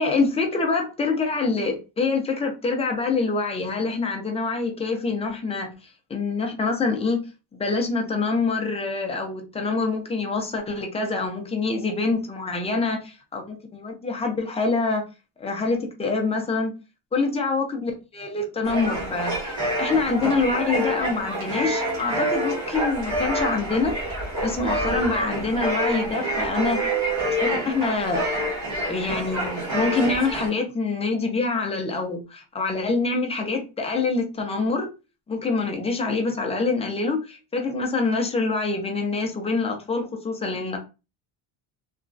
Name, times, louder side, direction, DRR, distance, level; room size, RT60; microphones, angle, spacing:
voice 1, 0.0-5.7 6.1-7.2 7.5-15.0 15.4-16.7 17.1-24.0 24.4-26.9 27.3-28.3 28.8-34.9 35.3-40.8, left 3 dB, 15° left, 0.3 m, -25 dB
sound 1, 18.6-30.5, right 1 dB, 35° right, 1.2 m, -27 dB
3.0 x 2.2 x 2.5 m
cardioid pair, 150°, 49 cm